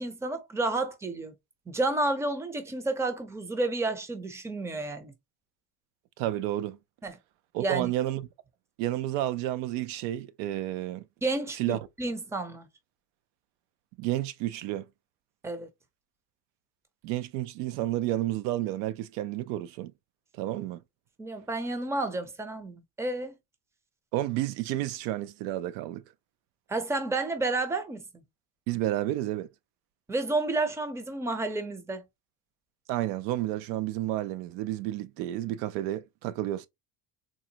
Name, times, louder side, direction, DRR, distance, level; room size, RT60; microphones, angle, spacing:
voice 1, 0.0-1.3 1.7-5.1 7.0-7.2 7.6-7.9 11.2-12.7 15.4-15.7 21.2-23.3 26.7-28.0 30.1-32.0, right 2 dB, 5° right, 0.5 m, -31 dB
voice 2, 6.2-6.8 7.5-8.3 8.8-11.1 11.6-11.8 14.0-14.9 17.0-19.9 20.4-20.8 24.1-26.0 28.7-29.5 32.9-36.7, right 14 dB, 80° right, 0.6 m, -31 dB
3.9 x 2.0 x 2.8 m
cardioid pair, 125°, 43 cm